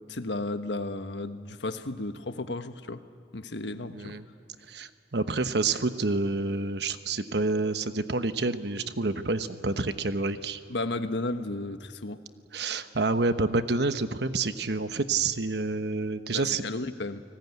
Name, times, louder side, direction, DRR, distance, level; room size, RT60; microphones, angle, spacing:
voice 1, 0.1-3.0 3.3-4.1 10.7-12.2 16.6-17.2, left 2 dB, 85° left, 9 dB, 1.3 m, -33 dB
voice 2, 3.9-4.2 4.7-10.6 12.5-16.6, right 3 dB, 70° right, 10 dB, 1.1 m, -28 dB
29.5 x 19.5 x 9.6 m, 2.5 s
head